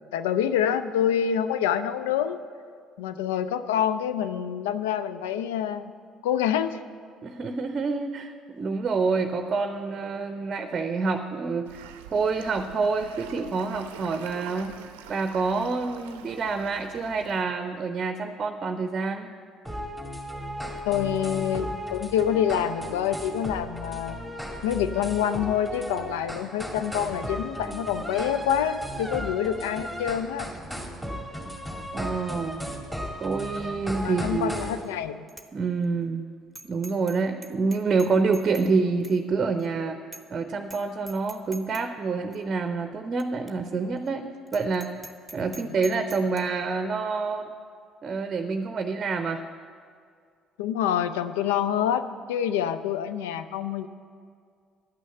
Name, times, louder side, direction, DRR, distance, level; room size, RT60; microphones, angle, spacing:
voice 1, 0.1-2.4 3.0-5.9 6.2-6.8 20.8-24.3 24.6-30.5 34.0-35.2 45.6-45.7 50.6-53.9, left 9 dB, 75° left, 11 dB, 0.4 m, -26 dB
voice 2, 7.2-11.8 12.1-14.7 15.1-19.3 31.9-32.6 33.2-34.6 35.5-36.3 36.6-40.0 40.3-44.9 45.3-47.5 48.0-49.4, right 4 dB, 40° right, 7 dB, 0.6 m, -27 dB
sound 1, 11.6-17.4, right 9 dB, 75° right, 0.5 m, -45 dB
sound 2, 19.7-34.8, equal, 5° left, 2.2 m, -35 dB
Bicycle bell, 34.6-34.9 35.3-35.5 35.8-35.9 36.5-37.2 37.4-38.7 39.0-39.2 39.6-39.7 40.1-40.4 40.6-40.8 41.1-41.8 42.3-42.4 43.2-43.3 43.5-43.6 44.0-44.1 44.5-46.4, right 2 dB, 10° right, 1.0 m, -44 dB
11.0 x 6.3 x 7.8 m, 2.2 s
hypercardioid pair, 55°, 0 cm